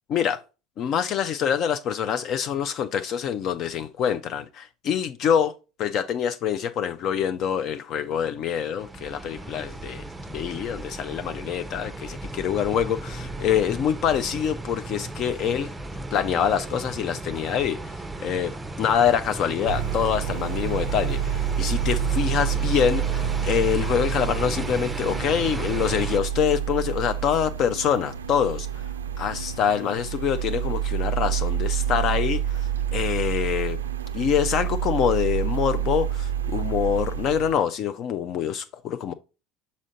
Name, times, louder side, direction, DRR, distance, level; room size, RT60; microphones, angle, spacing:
voice 1, 0.1-0.4 0.8-5.5 5.8-10.0 10.3-15.7 16.1-18.5 18.8-28.7 29.2-33.8 34.1-39.1, left 8 dB, 45° left, 0.3 m, -25 dB
sound 1, 8.8-26.2, right 2 dB, 10° right, 0.5 m, -34 dB
sound 2, 19.7-37.5, right 10 dB, 80° right, 0.3 m, -28 dB
6.2 x 4.1 x 3.8 m
figure-of-eight pair, 70°, 0 cm